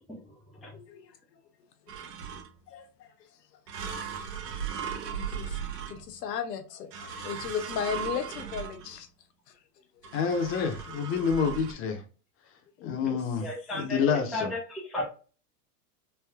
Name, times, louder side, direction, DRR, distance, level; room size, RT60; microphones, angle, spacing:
voice 1, 0.7-1.4 2.7-3.1 3.9-9.1 10.0-10.1 10.6-10.7 12.8-13.2, left 7 dB, 90° left, 0.8 m, -37 dB
sound 1, 1.9-2.7 3.7-6.4 6.9-9.1 10.0-11.7, right 7 dB, 85° right, 1.0 m, -37 dB
voice 2, 10.1-12.0 12.8-14.5, left 6 dB, 25° left, 0.7 m, -28 dB
voice 3, 13.4-15.1, left 1 dB, ahead, 0.3 m, -34 dB
3.4 x 2.6 x 2.3 m
supercardioid pair, 125°, 48 cm